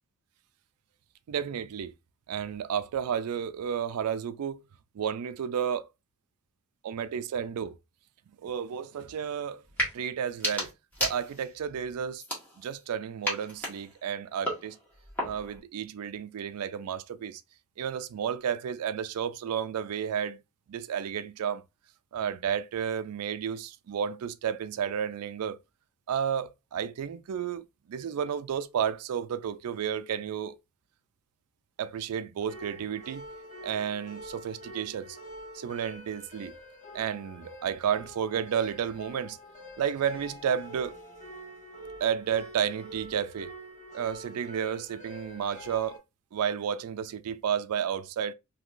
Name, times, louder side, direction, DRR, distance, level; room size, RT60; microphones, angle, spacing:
voice 1, 1.3-1.9 2.3-4.6 4.9-5.9 6.8-7.8 8.4-9.6 9.9-10.7 11.0-12.2 12.6-14.8 15.2-17.4 17.8-20.4 20.7-21.6 22.1-25.6 26.1-30.6 31.8-33.2 33.6-35.2 35.5-36.5 36.9-39.4 39.8-41.0 42.0-43.5 43.9-46.0 46.3-48.3, right 8 dB, 85° right, 0.4 m, -32 dB
sound 1, 9.6-9.9 10.3-11.6 12.2-12.8 13.2-15.6, equal, 10° left, 1.4 m, -34 dB
sound 2, 32.4-46.0, equal, 35° left, 1.4 m, -46 dB
3.7 x 2.8 x 2.4 m
head